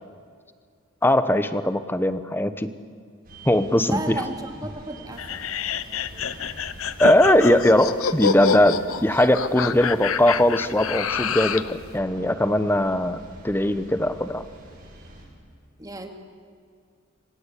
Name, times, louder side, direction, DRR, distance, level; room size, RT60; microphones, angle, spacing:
voice 1, 1.0-2.7 3.5-4.1 7.0-14.4, left 1 dB, 10° left, 12 dB, 1.0 m, -20 dB
sound 1, 3.2-15.3, right 1 dB, 45° right, 7.1 m, -45 dB
voice 2, 3.8-5.4 15.8-16.1, right 1 dB, 15° right, 4 dB, 2.3 m, -33 dB
sound 2, 5.2-11.7, left 6 dB, 85° left, 1.0 m, -27 dB
27.0 x 26.5 x 8.4 m, 2.1 s
head